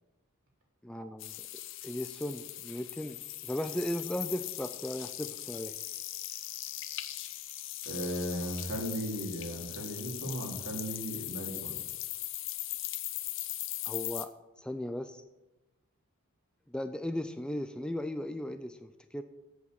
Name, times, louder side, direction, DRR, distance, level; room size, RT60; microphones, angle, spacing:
voice 1, 0.8-1.5 1.8-5.8 13.9-15.2 16.7-19.2, left 1 dB, 5° left, 9 dB, 0.3 m, -37 dB
sound 1, 1.2-14.3, left 14 dB, 55° left, 0.7 m, -39 dB
voice 2, 7.8-11.8, equal, 70° right, -1 dB, 3.1 m, -36 dB
8.1 x 7.4 x 8.2 m, 1.0 s
head